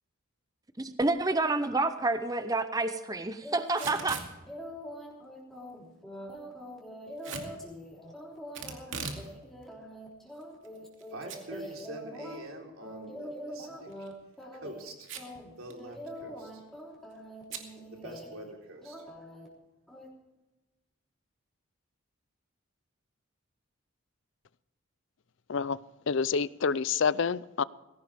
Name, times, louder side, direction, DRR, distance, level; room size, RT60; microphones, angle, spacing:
voice 1, 0.8-4.2, right 2 dB, 15° right, 0.6 m, -29 dB
sound 1, 3.4-4.1 4.5-12.4 12.8-14.1 14.4-14.9 15.2-18.5 18.8-19.5 19.9-20.1, equal, ahead, 3.5 m, -44 dB
Packing tape duct tape / Tearing, 3.7-4.3 7.2-7.5 8.5-9.3 9.6-9.7 10.4-11.0 11.3-11.4 11.8-11.9 13.9-14.1 15.0-15.4 15.7-15.8 16.0-16.4 17.5-17.7, right 5 dB, 70° right, 2.5 m, -39 dB
voice 2, 11.1-13.9 14.5-15.1 15.6-16.6 17.9-19.1, right 2 dB, 85° right, 3.8 m, -45 dB
voice 3, 26.1-27.6, left 5 dB, 65° left, 0.5 m, -28 dB
20.0 x 17.0 x 3.5 m
head